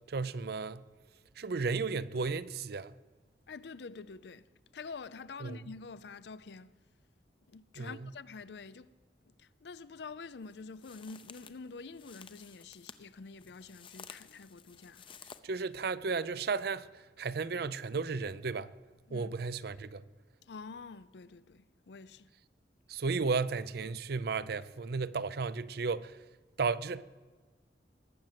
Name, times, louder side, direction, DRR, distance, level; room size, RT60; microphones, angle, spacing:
voice 1, 0.1-0.8 1.4-2.9 5.4-5.6 7.8-8.0 15.4-18.7 19.1-20.0 22.9-26.2 26.6-27.0, right 4 dB, 60° right, 0.5 m, -34 dB
voice 2, 3.5-4.5 4.7-6.8 7.5-8.9 9.3-15.2 19.1-19.3 20.4-22.3, left 4 dB, 70° left, 0.5 m, -47 dB
sound 1, 10.4-15.4, left 6 dB, 30° left, 0.6 m, -53 dB
19.5 x 7.7 x 7.5 m
head